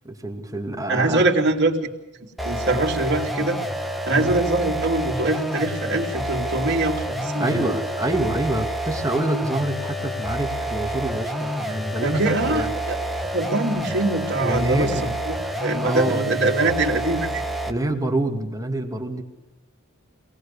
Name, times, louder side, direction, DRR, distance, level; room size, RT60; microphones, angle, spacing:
voice 1, 0.0-1.3 4.2-4.3 7.4-12.7 14.4-15.1 15.5-16.3 17.7-19.2, right 1 dB, 15° right, 4 dB, 2.2 m, -26 dB
voice 2, 0.9-1.9 2.4-3.6 4.1-7.7 12.0-13.0 13.3-17.4, right 2 dB, 55° right, 2 dB, 3.1 m, -23 dB
sound 1, 2.4-17.9, right 1 dB, ahead, 1.4 m, -28 dB
26.5 x 19.0 x 6.9 m, 0.97 s
head